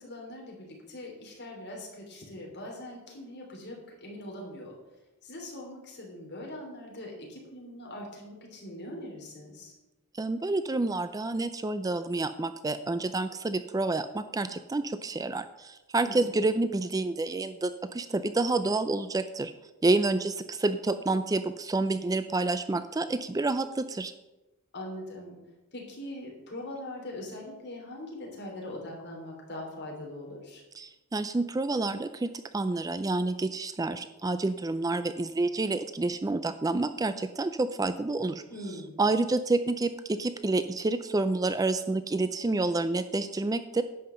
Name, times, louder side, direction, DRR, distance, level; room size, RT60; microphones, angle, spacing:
voice 1, 0.0-4.7 5.2-9.7 16.0-16.3 24.7-25.4 25.7-30.6 38.5-39.0, left 1 dB, 50° left, -1 dB, 3.4 m, -42 dB
voice 2, 10.1-19.5 19.8-24.1 30.7-38.4 39.0-43.8, right 2 dB, 15° right, 11 dB, 0.3 m, -29 dB
11.0 x 5.7 x 7.7 m, 1.0 s
head